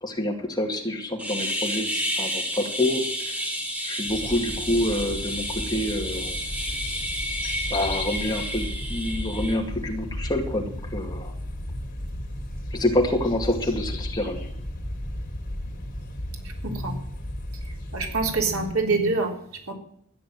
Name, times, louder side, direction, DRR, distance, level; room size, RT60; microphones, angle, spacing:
voice 1, 0.0-3.4 3.8-6.4 7.7-11.3 12.7-14.4, left 1 dB, 20° left, 2 dB, 2.2 m, -27 dB
sound 1, 1.2-9.6, equal, 5° right, 2.7 m, -31 dB
sound 2, 4.1-18.7, left 1 dB, 40° left, 3.5 m, -34 dB
voice 2, 16.6-17.0 17.9-19.7, right 3 dB, 80° right, 2 dB, 3.7 m, -25 dB
14.0 x 9.8 x 7.7 m, 0.69 s
head